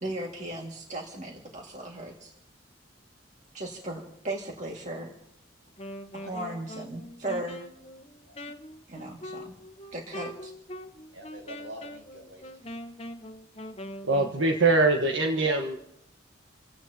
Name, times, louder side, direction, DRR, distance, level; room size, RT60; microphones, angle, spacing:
voice 1, 0.0-2.3 3.5-5.1 6.3-7.6 8.9-9.5 9.9-10.5, right 1 dB, 40° right, -1 dB, 2.1 m, -36 dB
Wind instrument woodwind instrument, 5.7-14.4, equal, 30° left, 1.1 m, -42 dB
voice 2, 11.1-12.7 15.4-15.6, right 1 dB, 65° right, 0 dB, 7.7 m, -44 dB
voice 3, 14.0-15.8, right 3 dB, 85° right, 2 dB, 1.4 m, -23 dB
28.5 x 17.0 x 2.9 m, 0.80 s
head